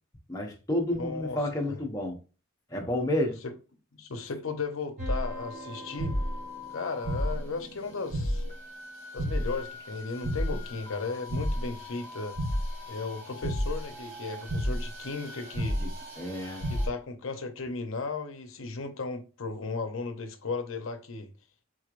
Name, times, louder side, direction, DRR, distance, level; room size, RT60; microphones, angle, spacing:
voice 1, 0.3-2.2 2.7-3.3 15.8-15.9 16.2-16.6, left 1 dB, 15° left, 0.8 m, -30 dB
voice 2, 1.0-1.4 1.7-1.8 3.4-3.5 3.9-6.2 6.7-8.4 9.1-12.4 12.9-15.8 16.7-21.3, left 4 dB, 70° left, 0.7 m, -35 dB
sound 1, 5.0-16.9, equal, 45° right, 2.0 m, -33 dB
3.9 x 3.1 x 2.4 m
head